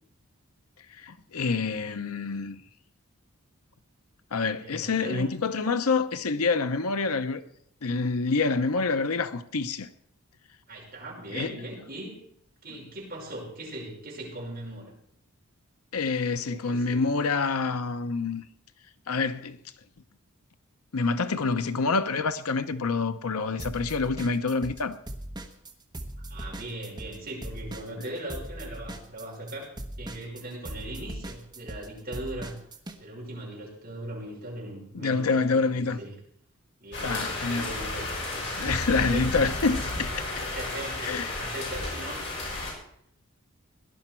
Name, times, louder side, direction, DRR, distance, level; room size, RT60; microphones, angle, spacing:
voice 1, 1.0-2.6 4.3-7.4 7.8-9.9 11.3-11.5 15.9-18.4 19.1-19.6 20.9-25.0 34.9-36.0 37.0-37.7 38.6-40.2 41.0-41.5, left 4 dB, 80° left, 0.8 m, -27 dB
voice 2, 4.5-5.3 10.7-12.1 12.6-14.9 16.5-17.0 21.7-21.8 26.3-29.7 30.0-32.6 33.0-36.1 36.8-39.3 40.4-42.2, right 1 dB, 40° right, 5.6 m, -39 dB
sound 1, 23.6-24.8 25.1-33.0, right 1 dB, 20° right, 1.1 m, -39 dB
sound 2, 36.9-42.7, left 2 dB, 55° left, 6.2 m, -32 dB
18.0 x 11.0 x 4.5 m
head